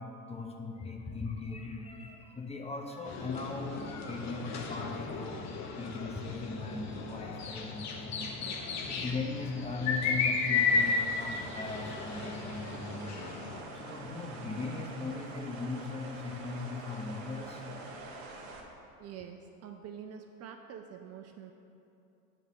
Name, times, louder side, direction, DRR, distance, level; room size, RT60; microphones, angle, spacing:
voice 1, 0.0-5.5 5.8-8.3 8.9-13.2 13.7-17.6, left 3 dB, 15° left, 2 dB, 0.8 m, -39 dB
sound 1, 3.1-13.6, left 5 dB, 40° left, 0.9 m, -34 dB
sound 2, 10.5-18.6, right 3 dB, 55° right, 1.2 m, -46 dB
voice 2, 19.0-21.5, right 8 dB, 40° right, 5 dB, 0.5 m, -46 dB
8.3 x 3.5 x 6.2 m, 2.7 s
hypercardioid pair, 80°, 41 cm